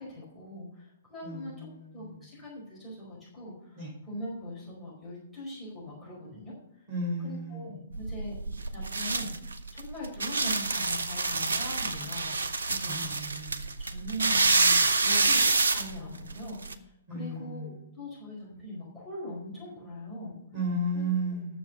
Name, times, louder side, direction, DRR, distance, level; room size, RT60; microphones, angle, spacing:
voice 1, 0.0-1.7 1.9-6.5 7.2-8.4 8.7-12.3 12.7-13.1 13.8-20.4 20.9-21.0 21.3-21.4, equal, ahead, -9 dB, 4.8 m, -41 dB
voice 2, 1.2-2.2 3.8-3.9 6.9-7.7 12.9-13.6 17.1-17.7 20.5-21.6, right 1 dB, 25° right, -4 dB, 5.4 m, -34 dB
sound 1, 7.9-16.7, right 3 dB, 65° right, 0.7 m, -27 dB
9.6 x 7.3 x 6.8 m, 0.84 s
figure-of-eight pair, 120°, 0 cm